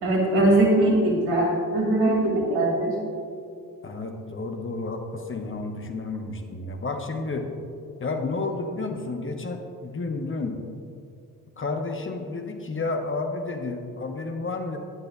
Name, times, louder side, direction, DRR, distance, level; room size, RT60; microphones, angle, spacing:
voice 1, 0.0-3.0, right 1 dB, 70° right, -2 dB, 2.5 m, -21 dB
voice 2, 3.8-7.5 8.0-10.6 11.6-14.8, left 3 dB, 25° left, 4 dB, 1.2 m, -31 dB
14.5 x 10.5 x 2.4 m, 2.5 s
figure-of-eight pair, 40°, 44 cm